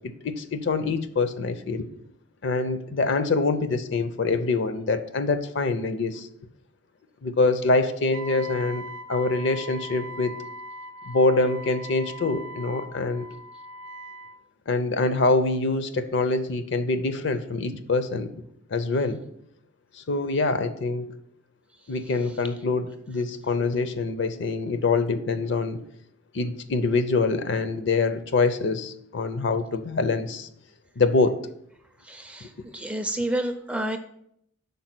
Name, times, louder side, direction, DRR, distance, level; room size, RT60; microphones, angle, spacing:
voice 1, 0.2-1.9 2.4-6.3 7.2-8.8 9.1-10.3 11.1-13.3 14.7-18.3 18.7-19.2 20.0-21.1 21.9-25.8 26.3-30.5 31.0-31.5 32.4-32.5, left 3 dB, 60° left, 10 dB, 0.5 m, -25 dB
Wind instrument woodwind instrument, 8.1-14.4, equal, 65° right, 0.5 m, -40 dB
voice 2, 32.0-34.0, right 1 dB, 5° right, 6 dB, 0.4 m, -30 dB
5.3 x 4.4 x 5.9 m, 0.72 s
head